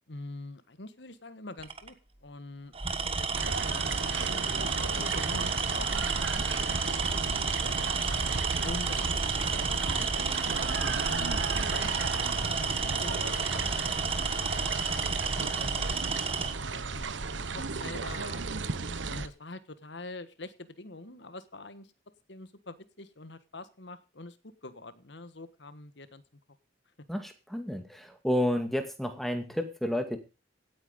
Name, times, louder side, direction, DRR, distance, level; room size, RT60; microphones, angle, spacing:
voice 1, 0.1-1.9 2.2-2.7 3.2-4.5 4.8-7.7 8.6-10.7 11.1-14.8 15.6-16.1 16.4-18.4 19.1-21.9 22.3-24.4 24.6-26.2, left 2 dB, 60° left, 13 dB, 1.5 m, -45 dB
Tools, 1.6-1.9 2.7-16.6, right 5 dB, 30° right, 1.4 m, -31 dB
sound 1, 3.3-19.3, right 4 dB, 70° right, 1.1 m, -34 dB
voice 2, 27.1-30.2, left 1 dB, ahead, 7 dB, 2.2 m, -31 dB
17.0 x 9.0 x 5.3 m, 0.32 s
head